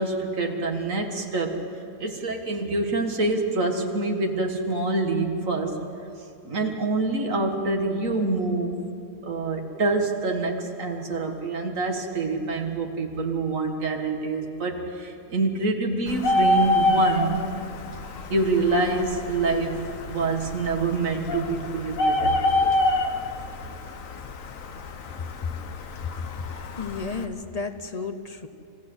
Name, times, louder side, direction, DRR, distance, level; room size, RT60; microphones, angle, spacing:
voice 1, 0.0-1.6 2.0-5.8 6.4-8.8 9.2-17.4 18.3-22.7, right 3 dB, 90° right, 3 dB, 2.2 m, -26 dB
Bird, 16.1-27.2, left 2 dB, 90° left, 1.5 m, -27 dB
voice 2, 26.4-28.5, left 4 dB, 35° left, 8 dB, 0.9 m, -33 dB
26.5 x 16.0 x 8.0 m, 2.6 s
omnidirectional pair, 1.3 m